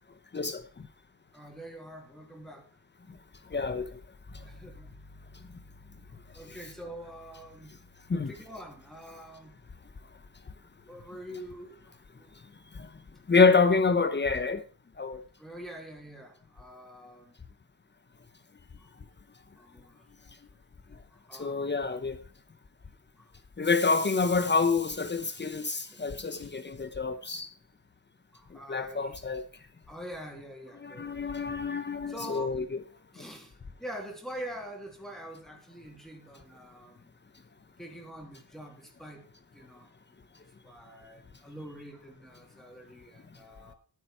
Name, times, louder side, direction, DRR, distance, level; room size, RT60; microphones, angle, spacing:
voice 1, 0.3-0.9 3.5-4.0 4.3-4.4 8.1-8.3 12.7-12.9 13.3-14.6 15.0-15.2 21.3-22.2 23.6-27.5 28.7-29.4 30.8-32.7 33.2-33.3, left 4 dB, 30° left, 0.9 m, -27 dB
voice 2, 1.3-2.7 4.4-4.9 6.3-7.8 8.1-9.5 10.9-11.8 12.2-12.3 15.4-17.3 18.8-18.9 19.6-20.0 21.1-21.7 23.2-23.3 25.9-26.5 28.3-29.2 29.9-31.2 32.1-32.6 33.1-37.1 37.8-39.3 39.5-39.9 40.6-43.7, equal, ahead, 2.8 m, -45 dB
sound 1, 4.3-14.8, left 2 dB, 45° left, 5.6 m, -57 dB
11.5 x 9.3 x 4.5 m
wide cardioid pair, 120°, 37 cm